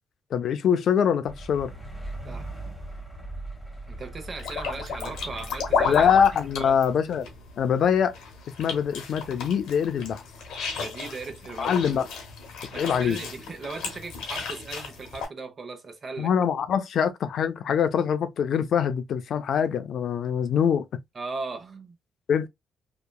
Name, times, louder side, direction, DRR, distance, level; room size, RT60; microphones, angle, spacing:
voice 1, 0.3-1.7 5.9-7.3 7.6-8.1 8.6-10.2 11.6-12.1 12.8-13.2 16.2-20.9 22.3-22.5, left 7 dB, 65° left, 0.4 m, -24 dB
sound 1, 1.3-6.9, right 1 dB, ahead, 1.3 m, -39 dB
voice 2, 3.9-6.2 6.6-6.8 10.8-11.8 12.7-16.3 21.1-22.0, right 3 dB, 45° right, 0.8 m, -38 dB
sound 2, 4.4-15.3, left 5 dB, 85° left, 1.0 m, -33 dB
2.8 x 2.3 x 2.2 m
cardioid pair, 75°, 0 cm